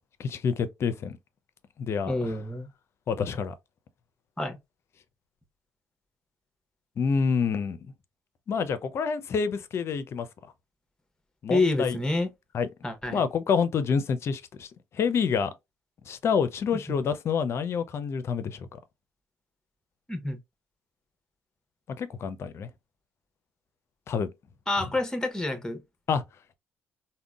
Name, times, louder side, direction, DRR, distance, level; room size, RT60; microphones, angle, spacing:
voice 1, 0.2-1.2 1.8-2.3 3.1-3.5 7.0-7.8 8.5-10.3 11.4-12.0 12.5-12.7 13.1-14.7 14.9-15.5 16.1-18.8 22.0-22.7 24.1-24.3 26.1-26.2, left 6 dB, 55° left, 0.5 m, -27 dB
voice 2, 2.1-2.7 4.4-4.6 11.5-12.3 12.8-13.2 16.9-17.0 20.1-20.4 24.7-25.8, left 2 dB, 10° left, 0.9 m, -28 dB
3.6 x 2.1 x 2.3 m
supercardioid pair, 65°, 5 cm